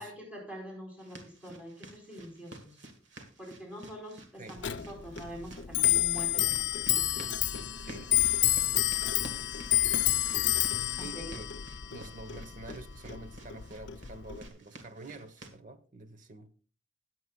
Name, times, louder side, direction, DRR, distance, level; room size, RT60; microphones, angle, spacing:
voice 1, 0.0-2.8 3.4-7.1 11.1-11.3, equal, 5° right, 4.2 m, -45 dB
sound 1, 1.0-15.6, right 1 dB, 60° right, 1.7 m, -50 dB
Clock, 4.6-14.5, left 13 dB, 60° left, 0.6 m, -29 dB
voice 2, 7.8-8.5 11.0-16.5, right 2 dB, 40° right, 1.1 m, -48 dB
21.0 x 7.8 x 2.3 m
head